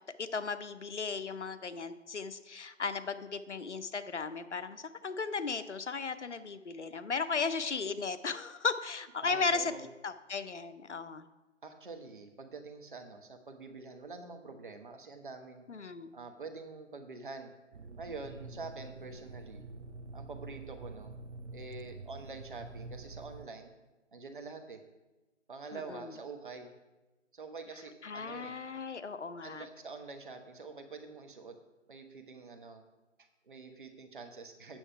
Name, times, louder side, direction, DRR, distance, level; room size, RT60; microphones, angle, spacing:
voice 1, 0.2-9.7 10.0-11.2 15.7-16.1 25.7-25.8 28.0-29.7, left 4 dB, 70° left, 11 dB, 0.7 m, -36 dB
voice 2, 9.2-9.9 11.6-15.6 16.1-17.5 18.0-19.6 20.1-21.1 21.5-23.7 24.1-24.8 25.5-26.7 27.3-28.6 29.4-31.6 31.9-32.8 33.2-34.8, right 4 dB, 45° right, 5 dB, 1.0 m, -46 dB
sound 1, 17.7-23.5, right 3 dB, 70° right, 0.6 m, -47 dB
9.0 x 6.4 x 4.6 m, 1.1 s
figure-of-eight pair, 150°, 37 cm